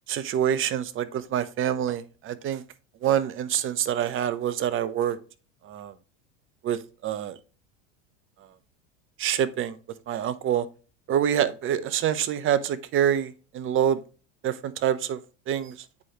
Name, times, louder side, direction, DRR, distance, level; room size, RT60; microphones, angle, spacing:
voice 1, 0.1-2.6 3.0-5.2 5.6-5.9 6.6-7.4 9.2-9.8 10.1-10.7 11.1-14.0 14.4-15.2 15.5-15.8, right 10 dB, 35° right, 0.7 m, -26 dB
8.4 x 4.6 x 2.9 m
hypercardioid pair, 85°, 36 cm